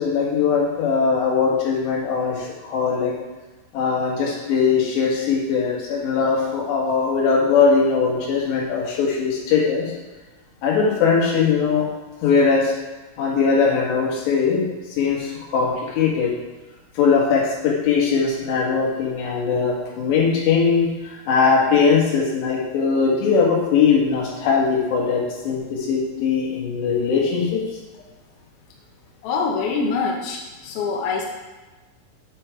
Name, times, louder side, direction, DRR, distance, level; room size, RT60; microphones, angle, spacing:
voice 1, 0.0-3.1 3.7-9.9 10.6-11.9 12.2-12.7 13.2-14.6 15.0-16.3 16.9-27.6, left 5 dB, 65° left, -3 dB, 3.3 m, -20 dB
voice 2, 29.2-30.4 30.6-31.3, left 4 dB, 85° left, -1 dB, 2.1 m, -24 dB
8.0 x 5.7 x 4.6 m, 1.2 s
omnidirectional pair, 5.9 m